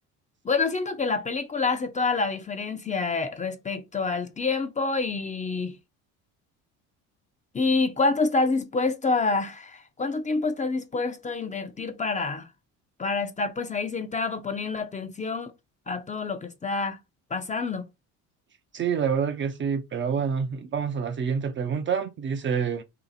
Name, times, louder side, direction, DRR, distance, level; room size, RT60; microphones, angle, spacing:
voice 1, 0.4-5.7 7.5-12.5 13.0-15.5 15.9-17.0 17.3-17.9, left 4 dB, 20° left, 0.5 m, -27 dB
voice 2, 18.7-22.8, right 6 dB, 30° right, 0.5 m, -27 dB
2.8 x 2.5 x 3.9 m
supercardioid pair, 85°, 38 cm